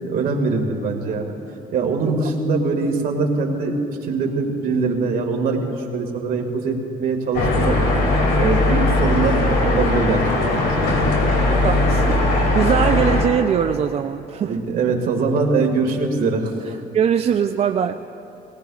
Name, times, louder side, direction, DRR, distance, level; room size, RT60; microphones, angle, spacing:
voice 1, 0.0-1.3 1.7-3.7 4.0-7.9 8.4-10.2 10.4-11.2 14.4-16.5, right 4 dB, 60° right, 2 dB, 1.9 m, -22 dB
sound 1, 7.3-13.2, left 2 dB, 75° left, 2.4 m, -19 dB
voice 2, 11.5-12.2 12.5-14.6 16.6-18.0, right 8 dB, 35° right, 6 dB, 0.4 m, -22 dB
20.0 x 18.5 x 2.4 m, 2.9 s
cardioid pair, 110°, 17 cm